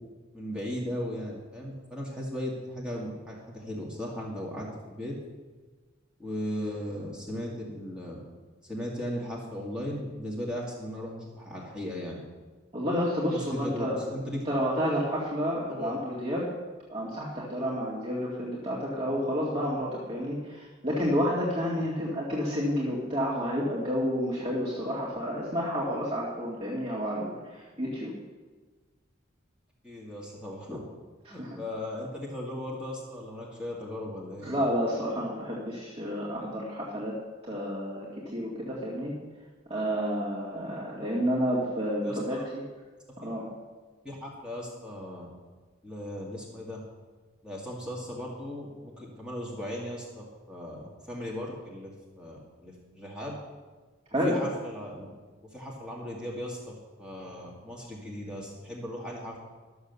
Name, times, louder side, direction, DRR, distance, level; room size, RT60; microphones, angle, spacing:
voice 1, 0.3-5.2 6.2-8.2 8.6-12.2 13.3-14.4 15.7-16.0 29.8-30.8 31.3-34.5 42.0-42.4 43.2-43.3 44.0-45.3 45.8-46.8 47.4-53.4 54.2-55.1 55.5-59.4, left 1 dB, 5° right, -4 dB, 1.9 m, -37 dB
voice 2, 12.7-14.0 14.4-16.4 16.9-28.1 31.3-31.6 34.4-37.2 37.5-38.1 38.3-39.1 39.7-42.6 43.2-43.5 54.1-54.4, equal, 30° right, -6 dB, 2.1 m, -30 dB
12.5 x 7.2 x 6.9 m, 1.3 s
head